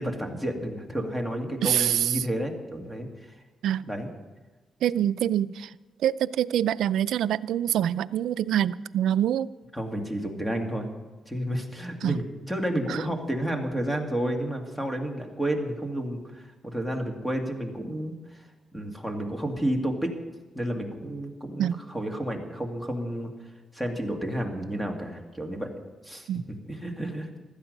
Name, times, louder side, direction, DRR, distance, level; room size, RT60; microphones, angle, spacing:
voice 1, 0.0-3.4 3.9-4.1 9.7-10.9 11.3-18.5 18.7-20.1 20.5-23.3 23.7-25.7 26.0-27.4, right 1 dB, 5° left, 3 dB, 2.2 m, -31 dB
voice 2, 1.6-2.1 3.6-3.8 4.8-5.7 6.0-9.5 12.0-12.2 12.9-13.0 21.6-21.8 26.3-26.4, right 10 dB, 85° right, 16 dB, 0.4 m, -25 dB
16.0 x 12.5 x 5.4 m, 1.2 s
cardioid pair, 110°, 0 cm